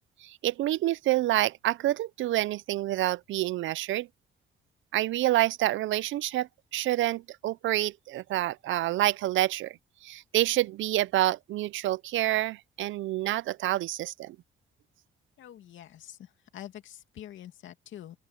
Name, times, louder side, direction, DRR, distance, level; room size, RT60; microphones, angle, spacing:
voice 1, 0.2-4.1 4.9-9.8 10.0-14.4, right 15 dB, 75° right, 0.6 m, -28 dB
voice 2, 15.4-18.2, left 11 dB, 75° left, 2.6 m, -46 dB
open air
cardioid pair, 90°, 20 cm